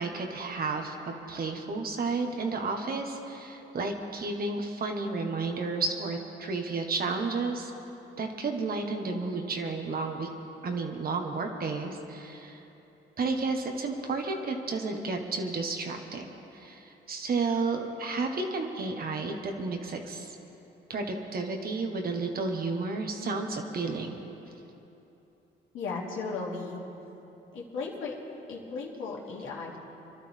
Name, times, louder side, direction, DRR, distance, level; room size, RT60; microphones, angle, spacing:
voice 1, 0.0-7.7 8.2-10.3 10.6-12.6 13.2-16.3 16.5-20.4 20.9-24.2, right 3 dB, 50° right, 3 dB, 1.6 m, -32 dB
voice 2, 25.7-26.8 27.5-28.1 28.5-29.8, left 4 dB, 80° left, -4 dB, 3.0 m, -36 dB
26.0 x 12.0 x 3.6 m, 3.0 s
cardioid pair, 90°, 20 cm